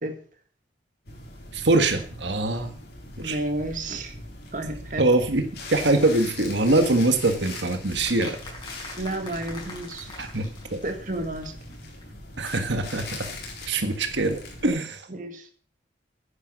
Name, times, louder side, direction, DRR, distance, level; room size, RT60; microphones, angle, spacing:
sound 1, 1.0-14.7, left 2 dB, 60° left, 4.2 m, -41 dB
voice 1, 1.5-2.8 3.2-3.4 5.0-8.4 10.2-10.8 12.4-13.3 13.7-15.1, right 2 dB, 75° right, 6 dB, 1.6 m, -23 dB
voice 2, 3.2-4.1 4.5-5.1 9.0-10.2 10.8-11.6 15.1-15.5, right 1 dB, 45° right, 5 dB, 1.9 m, -31 dB
sound 2, 7.5-11.2 11.4-11.5 11.7-11.8 12.0-12.1, left 2 dB, 25° left, 5.4 m, -43 dB
10.5 x 10.0 x 6.2 m, 0.44 s
head